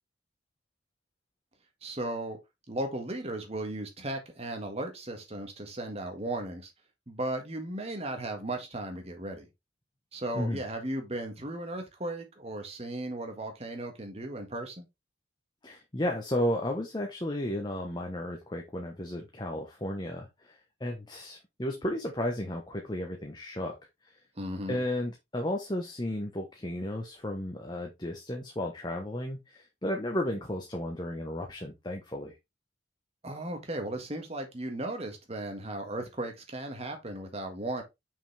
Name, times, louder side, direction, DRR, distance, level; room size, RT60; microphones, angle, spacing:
voice 1, 1.8-2.4 2.7-6.7 7.1-9.5 10.1-14.9 24.4-24.8 33.2-37.8, right 1 dB, 30° right, 1.8 m, -36 dB
voice 2, 15.6-20.5 20.8-23.8 24.7-32.3, left 1 dB, 20° left, 1.0 m, -33 dB
6.2 x 5.4 x 3.4 m
head